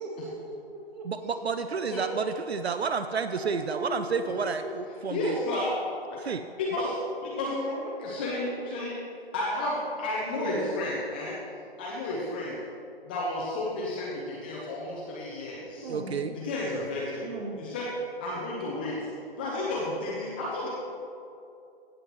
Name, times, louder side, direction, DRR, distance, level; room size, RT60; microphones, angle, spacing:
voice 1, 0.0-1.7 3.3-4.7 7.4-7.9 10.3-10.7 15.8-16.2 17.2-17.6, right 1 dB, 40° right, -3 dB, 2.3 m, -38 dB
voice 2, 1.1-5.4 6.2-6.4 15.9-16.3, right 5 dB, 80° right, 9 dB, 0.5 m, -30 dB
voice 3, 5.1-5.8 6.7-6.9 7.3-7.5 8.0-9.0 9.3-11.4 11.8-12.6 13.0-15.9 16.3-17.3 17.6-17.9 18.2-19.0 19.4-20.7, left 2 dB, 10° left, -5 dB, 0.5 m, -32 dB
16.0 x 7.7 x 3.0 m, 2.6 s
figure-of-eight pair, 135°, 31 cm